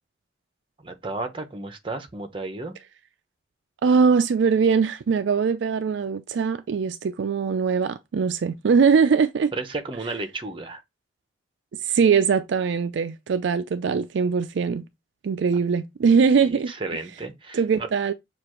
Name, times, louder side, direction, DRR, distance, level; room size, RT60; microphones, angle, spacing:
voice 1, 0.8-2.7 9.5-10.8 16.4-17.9, right 3 dB, 25° right, 0.8 m, -33 dB
voice 2, 3.8-9.5 11.8-14.8 15.2-16.7 17.5-18.1, right 5 dB, 70° right, 0.4 m, -21 dB
6.7 x 2.5 x 3.0 m
head